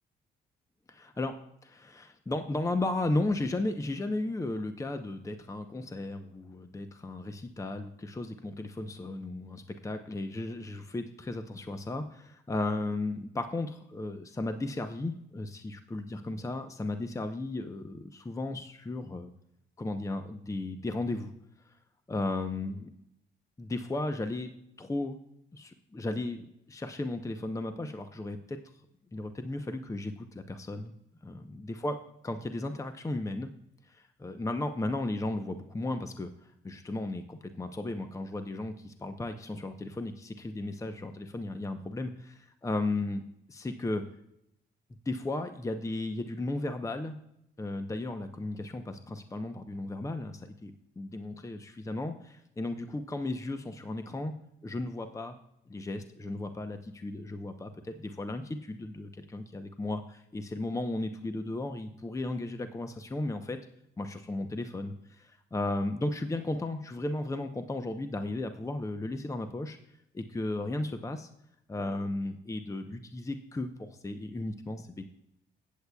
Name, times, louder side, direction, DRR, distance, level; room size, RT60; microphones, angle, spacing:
voice 1, 0.9-1.3 1.6-19.3 19.8-21.3 21.7-21.8 22.1-22.9 23.6-24.5 24.8-25.2 25.5-28.6 29.1-30.9 31.2-33.5 33.9-43.2 43.5-44.0 45.1-47.2 47.6-54.3 54.6-55.4 55.7-63.6 64.0-69.8 70.1-71.3 71.7-75.0, left 2 dB, 15° left, 8 dB, 0.7 m, -35 dB
19.0 x 8.3 x 2.3 m, 0.78 s
cardioid pair, 90°, 20 cm